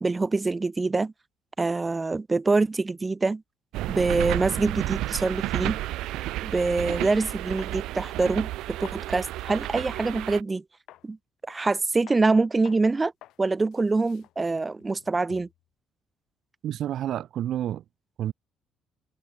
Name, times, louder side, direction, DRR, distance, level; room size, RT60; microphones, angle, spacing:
voice 1, 0.0-1.1 1.6-3.4 3.9-5.8 6.4-10.6 11.0-11.2 11.5-13.1 13.4-15.5, right 3 dB, 15° right, 0.6 m, -25 dB
sound 1, 3.7-10.4, right 16 dB, 90° right, 1.2 m, -31 dB
sound 2, 6.3-6.4 6.9-7.1 7.6-7.9 8.2-9.7 10.1-10.3 10.9-11.1 11.5-11.8 12.1-12.3 12.6-12.9 13.2-13.4 13.7-15.6, left 14 dB, 75° left, 1.2 m, -50 dB
voice 2, 16.6-17.8 18.2-18.3, right 11 dB, 55° right, 0.4 m, -29 dB
cardioid pair, 160°, 0 cm